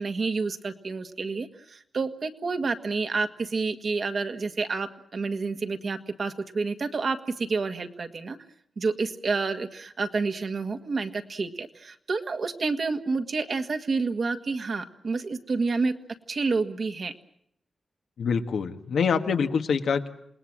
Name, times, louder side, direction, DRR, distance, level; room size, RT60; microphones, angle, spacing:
voice 1, 0.0-8.4 8.8-15.9 16.3-17.1, right 4 dB, 55° right, 7 dB, 1.7 m, -29 dB
voice 2, 18.2-20.1, left 6 dB, 90° left, 6 dB, 1.7 m, -25 dB
27.5 x 19.5 x 7.5 m, 0.72 s
wide cardioid pair, 110°, 0 cm